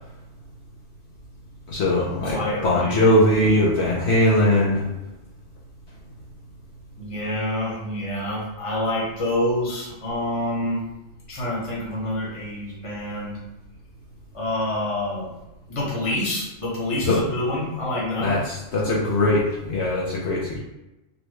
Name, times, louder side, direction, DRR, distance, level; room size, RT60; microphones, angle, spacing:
voice 1, 1.7-2.4 2.6-4.8 17.1-17.2 18.2-20.6, left 1 dB, 65° left, -4 dB, 0.9 m, -20 dB
voice 2, 2.2-3.1 7.0-10.8 11.3-13.4 14.3-15.3 15.7-18.4, left 1 dB, 30° left, -4 dB, 0.9 m, -27 dB
4.0 x 2.2 x 3.1 m, 0.96 s
omnidirectional pair, 1.3 m